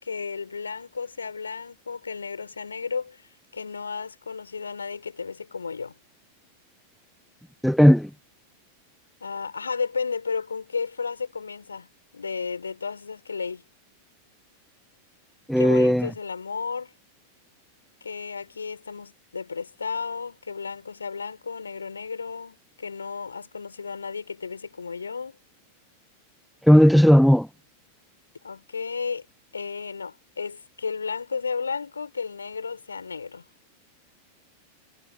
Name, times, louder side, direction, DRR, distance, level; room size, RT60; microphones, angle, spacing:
voice 1, 0.0-3.2 3.5-5.9 9.2-11.9 12.1-13.6 15.6-16.9 18.0-25.4 28.4-29.3 29.5-33.4, left 5 dB, 75° left, 4.0 m, -33 dB
voice 2, 7.6-8.1 15.5-16.1 26.7-27.5, equal, ahead, 0.4 m, -16 dB
figure-of-eight pair, 90°, 0 cm